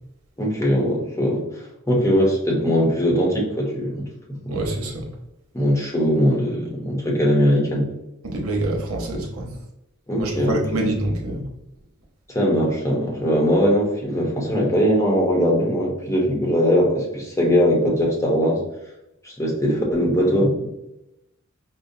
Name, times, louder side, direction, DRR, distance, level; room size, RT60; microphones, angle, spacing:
voice 1, 0.4-1.4 1.9-4.0 4.4-4.6 5.5-7.9 10.1-10.6 12.3-18.6 19.2-20.7, equal, 15° left, -2 dB, 0.8 m, -20 dB
voice 2, 4.5-5.1 8.2-9.5 10.2-11.4, right 1 dB, 90° right, -1 dB, 0.9 m, -26 dB
5.1 x 2.0 x 2.7 m, 0.87 s
head